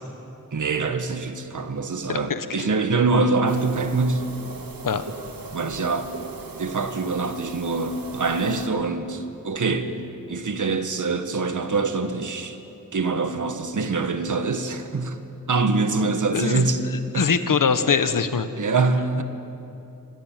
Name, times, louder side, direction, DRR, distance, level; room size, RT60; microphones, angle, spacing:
voice 1, 0.5-4.3 5.5-6.1 6.6-9.9 10.3-12.6 12.9-15.2 15.5-17.3 18.6-19.2, right 3 dB, 60° right, 8 dB, 1.7 m, -24 dB
voice 2, 2.1-2.5 4.8-5.0 16.3-16.6 17.1-18.5, left 6 dB, 65° left, 10 dB, 1.3 m, -22 dB
sound 1, 3.5-8.7, right 3 dB, 75° right, 2.1 m, -39 dB
26.0 x 20.5 x 7.5 m, 2.8 s
wide cardioid pair, 140°, 35 cm